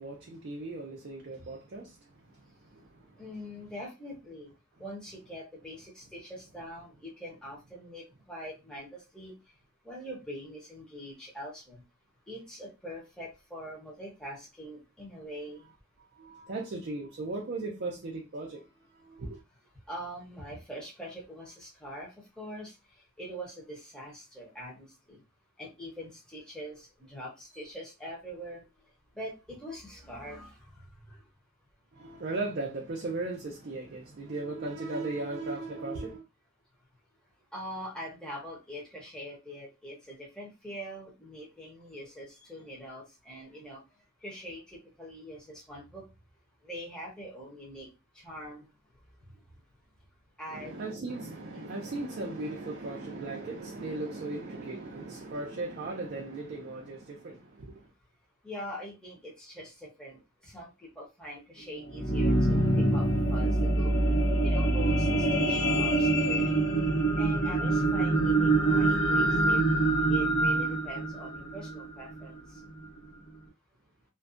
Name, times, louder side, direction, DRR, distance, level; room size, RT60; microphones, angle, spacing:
voice 1, 0.0-3.2 16.1-18.7 18.9-19.4 31.9-36.2 50.5-57.9, right 2 dB, 50° right, 0.4 m, -37 dB
voice 2, 3.2-4.5 4.8-9.3 9.8-11.8 12.3-15.7 19.9-22.7 23.2-25.2 25.6-28.6 29.1-30.6 31.1-31.2 37.5-43.8 44.2-46.0 46.6-47.9 48.1-48.7 50.4-50.8 51.5-51.9 58.4-63.9 64.4-66.6 67.2-69.7 70.1-72.4, equal, 5° left, 0.8 m, -43 dB
sound 1, 61.7-72.2 72.8-72.9, right 2 dB, 80° left, 0.9 m, -25 dB
2.5 x 2.2 x 2.4 m
head